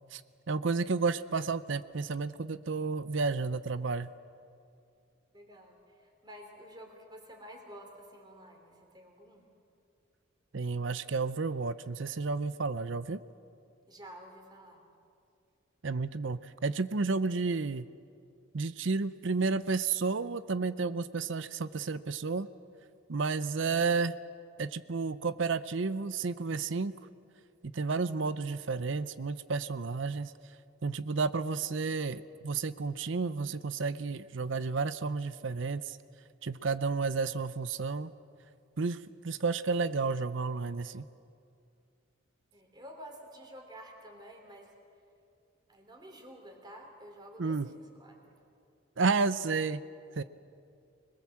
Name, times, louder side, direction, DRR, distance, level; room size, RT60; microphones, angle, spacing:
voice 1, 0.5-4.1 10.5-13.2 15.8-17.8 18.5-22.5 23.1-24.2 24.6-26.9 27.7-30.3 30.8-36.0 36.4-38.1 38.8-39.0 39.2-41.0 47.4-47.7 49.0-49.8 50.2-50.3, right 4 dB, 65° right, 14 dB, 0.6 m, -31 dB
voice 2, 5.3-9.4 13.9-14.8 42.5-44.7 45.7-48.3, equal, 20° right, 2 dB, 3.6 m, -50 dB
25.0 x 21.0 x 7.5 m, 2.4 s
head